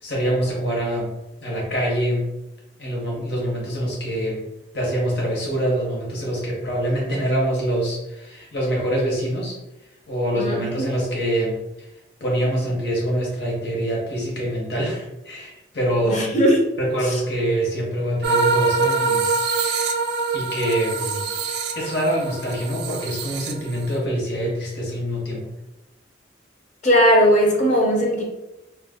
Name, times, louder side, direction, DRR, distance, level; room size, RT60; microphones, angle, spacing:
voice 1, 0.0-1.1 1.4-2.2 2.8-4.4 4.7-9.6 10.1-11.9 12.2-16.4 16.8-19.8 20.3-21.2 21.7-25.5, right 1 dB, 60° left, -3 dB, 1.0 m, -25 dB
voice 2, 10.3-10.9 16.0-16.6 17.0-17.2 26.8-28.2, equal, 40° left, -1 dB, 0.5 m, -18 dB
sound 1, 18.2-24.0, right 4 dB, 55° right, 0.3 m, -24 dB
2.3 x 2.2 x 3.5 m, 0.94 s
head